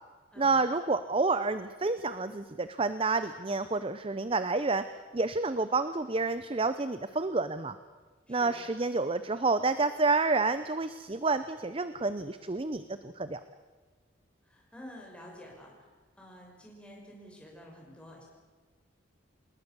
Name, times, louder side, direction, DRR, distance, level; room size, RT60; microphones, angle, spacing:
voice 1, 0.4-4.8 5.1-7.8 8.3-13.4, right 3 dB, 30° right, 12 dB, 0.6 m, -29 dB
voice 2, 14.4-15.9 16.1-18.2, left 1 dB, 5° left, -2 dB, 6.2 m, -49 dB
27.0 x 20.0 x 7.0 m, 1.4 s
head